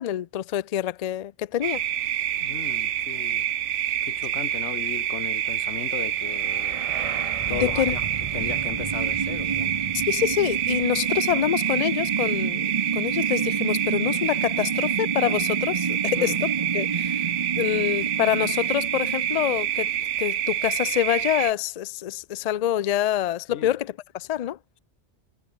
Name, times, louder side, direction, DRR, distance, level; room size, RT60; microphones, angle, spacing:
voice 1, 0.0-1.8 7.5-8.0 9.9-16.5 16.7-17.3 17.6-19.9 20.2-24.6, left 11 dB, 60° left, 0.4 m, -26 dB
sound 1, 1.6-21.5, right 11 dB, 85° right, 1.1 m, -27 dB
voice 2, 2.4-3.5 4.0-6.8 7.5-8.0 8.3-9.7 16.1-16.4 23.5-23.7, left 9 dB, 80° left, 1.2 m, -36 dB
sound 2, 6.3-20.2, right 5 dB, 30° right, 0.8 m, -31 dB
omnidirectional pair, 1.2 m